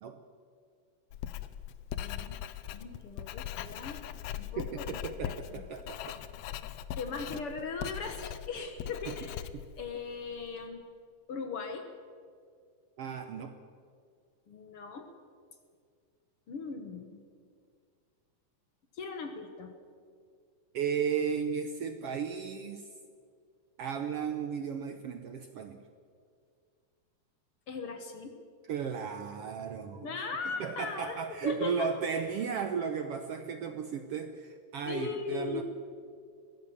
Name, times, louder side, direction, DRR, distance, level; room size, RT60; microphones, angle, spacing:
Writing, 1.1-10.5, left 11 dB, 75° left, 1.7 m, -40 dB
voice 1, 2.0-2.4 2.7-4.0 4.4-5.6 7.0-9.5 9.8-10.8 11.3-11.9 14.5-15.1 16.5-17.2 18.9-19.8 27.7-28.4 30.0-31.9 34.9-35.6, left 4 dB, 55° left, 6 dB, 2.0 m, -39 dB
voice 2, 4.6-6.2 9.1-9.2 13.0-13.6 20.7-22.9 23.8-25.9 28.7-30.2 30.6-35.6, right 6 dB, 65° right, 7 dB, 1.6 m, -35 dB
22.0 x 16.5 x 7.2 m, 2.1 s
omnidirectional pair, 3.6 m